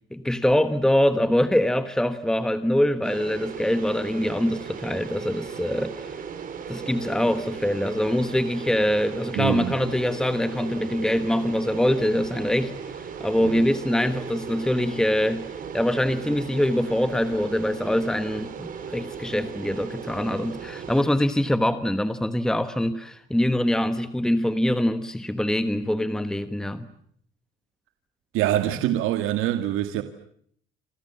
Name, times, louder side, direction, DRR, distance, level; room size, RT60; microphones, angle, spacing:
voice 1, 0.1-6.2 6.7-15.5 15.7-26.9, left 1 dB, 5° left, 1.2 m, -24 dB
sound 1, 3.0-21.0, right 7 dB, 40° right, 4.7 m, -37 dB
voice 2, 9.3-9.8 13.4-13.6 28.3-30.0, right 13 dB, 80° right, 2.0 m, -25 dB
28.0 x 27.5 x 7.3 m
cardioid pair, 140°, 21 cm